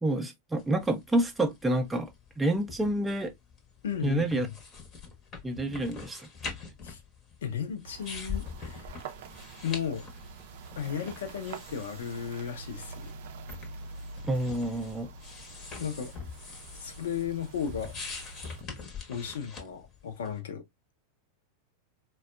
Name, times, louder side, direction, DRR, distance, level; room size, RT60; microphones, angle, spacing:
voice 1, 0.0-2.1 2.4-3.3 4.0-4.5 5.4-6.2 14.2-15.1, right 1 dB, 10° right, 0.5 m, -28 dB
sound 1, 0.6-20.4, left 5 dB, 30° left, 0.9 m, -45 dB
voice 2, 3.8-4.5 6.8-7.0 7.4-8.9 9.6-10.1 10.8-13.1 15.8-16.1 16.7-18.0 19.1-20.6, left 7 dB, 60° left, 0.6 m, -35 dB
sound 2, 7.8-18.6, right 3 dB, 55° right, 0.5 m, -46 dB
4.1 x 2.3 x 2.3 m
figure-of-eight pair, 90°, 0 cm